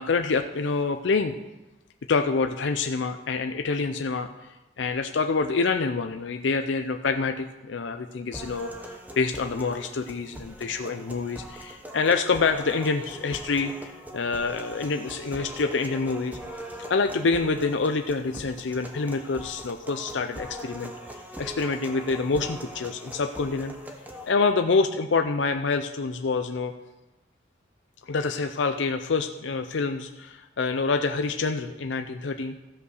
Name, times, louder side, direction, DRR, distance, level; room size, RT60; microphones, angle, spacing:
voice 1, 0.0-1.3 2.1-4.3 4.8-8.7 9.2-16.4 16.9-20.9 21.4-23.7 24.3-26.7 28.1-32.5, left 4 dB, 70° left, 6 dB, 0.5 m, -26 dB
sound 1, 8.3-24.3, equal, 10° right, 1.0 m, -41 dB
15.0 x 5.5 x 6.4 m, 1.1 s
head